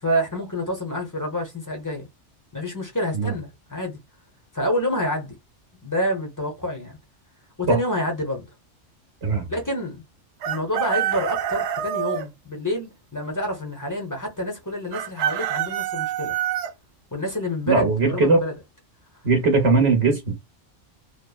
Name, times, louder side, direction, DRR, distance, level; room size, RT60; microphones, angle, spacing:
voice 1, 0.0-2.1 2.5-4.0 4.5-5.3 5.8-7.0 7.6-8.5 9.5-10.0 10.5-16.3 17.1-18.5, equal, 20° left, 0.6 m, -27 dB
Chicken rooster, 10.4-12.3 14.9-16.7, right 10 dB, 90° right, 0.9 m, -26 dB
voice 2, 17.7-18.4 19.2-20.4, right 3 dB, 60° right, 1.0 m, -19 dB
3.0 x 2.1 x 2.3 m
omnidirectional pair, 1.3 m